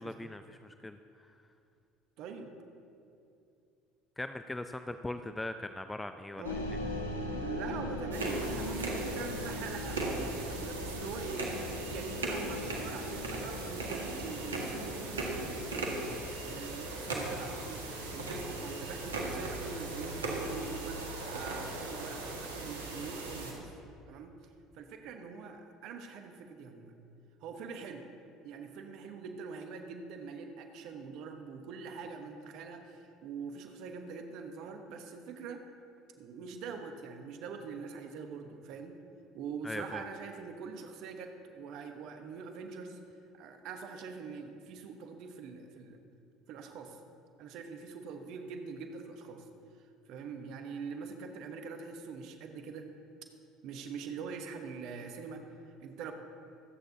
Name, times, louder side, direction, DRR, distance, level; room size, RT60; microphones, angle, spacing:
voice 1, 0.0-1.3 4.2-6.6 39.6-40.0, left 2 dB, 10° left, 9 dB, 0.5 m, -40 dB
voice 2, 2.2-2.5 6.4-6.7 7.4-23.7 24.1-24.3 24.7-27.0 27.4-28.0 28.4-35.7 36.2-38.9 39.3-43.0 43.3-46.0 46.5-47.0 47.4-49.4 50.1-52.9 53.6-56.1, right 5 dB, 60° right, 5 dB, 1.1 m, -43 dB
sound 1, 6.4-16.2, left 2 dB, 85° left, 1.3 m, -40 dB
sound 2, 8.1-23.5, right 2 dB, 85° right, 1.7 m, -38 dB
25.0 x 9.0 x 2.8 m, 2.6 s
hypercardioid pair, 65°, 0 cm